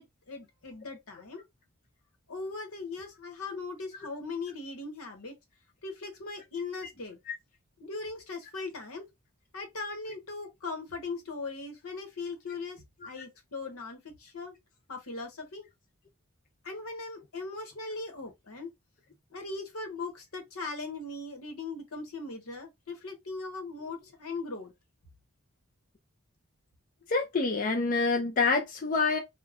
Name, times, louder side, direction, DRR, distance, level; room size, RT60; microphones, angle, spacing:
voice 1, 0.0-1.4 2.3-5.3 5.8-7.2 7.8-9.1 9.5-14.5 14.9-15.7 16.6-18.7 19.3-24.7, left 3 dB, 80° left, 1.0 m, -39 dB
voice 2, 27.1-29.2, left 4 dB, 35° left, 0.4 m, -27 dB
2.3 x 2.2 x 3.4 m
head